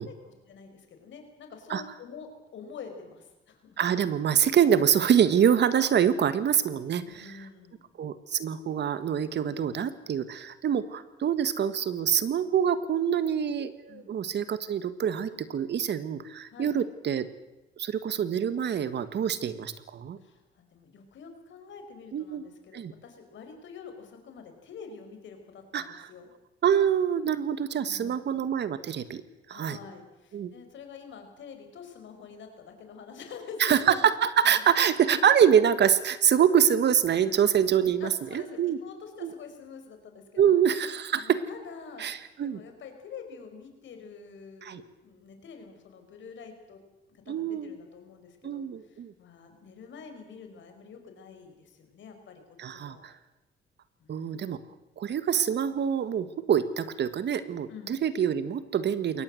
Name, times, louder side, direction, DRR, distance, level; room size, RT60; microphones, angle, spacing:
voice 1, 0.0-3.8 7.1-7.9 13.9-14.2 16.5-16.7 20.2-26.3 27.8-28.3 29.5-34.0 34.4-34.7 38.0-40.6 41.2-42.1 42.4-46.8 47.1-52.4 52.7-53.0 54.0-54.7 57.7-58.0, left 5 dB, 70° left, 6 dB, 5.3 m, -47 dB
voice 2, 3.8-7.0 8.0-17.3 17.8-20.2 22.1-22.4 22.7-22.9 25.7-26.0 26.6-29.2 29.5-29.8 30.3-30.5 33.6-38.8 39.2-39.3 40.4-41.4 42.0-42.6 44.6-44.8 47.3-47.7 48.4-49.1 52.6-53.1 54.1-54.6 55.0-59.2, right 8 dB, 60° right, 13 dB, 1.6 m, -25 dB
22.5 x 18.5 x 7.8 m, 1.0 s
cardioid pair, 90°, 20 cm